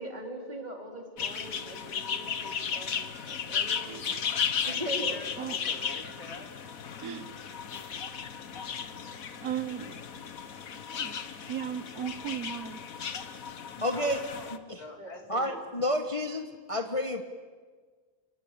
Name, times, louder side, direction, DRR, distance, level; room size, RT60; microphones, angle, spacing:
voice 1, 0.0-2.9 3.2-4.0 4.7-5.2 14.1-14.2 15.0-15.5, right 1 dB, 30° right, 4.4 m, -41 dB
sound 1, 1.2-14.6, left 7 dB, 65° left, 1.7 m, -35 dB
voice 2, 4.6-6.6 13.9-15.6, left 2 dB, 85° left, 3.7 m, -46 dB
voice 3, 7.0-7.3 9.4-10.0 11.0-11.2 11.5-12.8, right 10 dB, 75° right, 1.5 m, -36 dB
voice 4, 13.8-14.2 15.3-17.2, left 1 dB, 20° left, 1.4 m, -30 dB
28.5 x 24.5 x 8.5 m
omnidirectional pair, 1.6 m